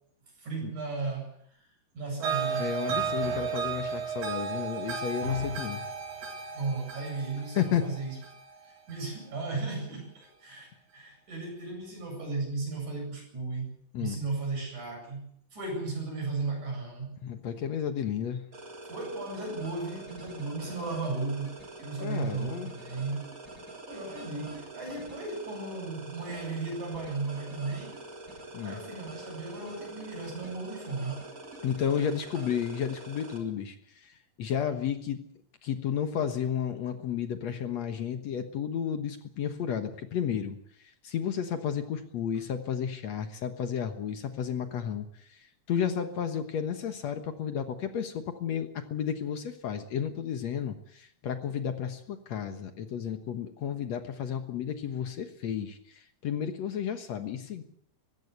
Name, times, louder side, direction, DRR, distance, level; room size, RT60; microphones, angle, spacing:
voice 1, 0.4-1.4 1.9-2.8 6.5-8.2 8.6-17.2 18.9-23.3 23.9-28.0 28.6-31.3 32.3-32.4, right 3 dB, 60° right, 1 dB, 9.6 m, -35 dB
sound 1, 2.2-9.4, right 5 dB, 85° right, 5.6 m, -34 dB
voice 2, 2.6-5.8 7.6-7.9 13.9-14.2 17.2-18.4 22.0-22.7 28.5-28.8 31.6-33.8 34.0-35.2 35.6-40.6 41.0-45.4 45.7-57.6, left 8 dB, 60° left, 8 dB, 2.2 m, -32 dB
sound 2, 18.5-33.4, right 2 dB, 25° right, 3.7 m, -45 dB
20.5 x 16.0 x 8.1 m, 0.65 s
omnidirectional pair, 3.9 m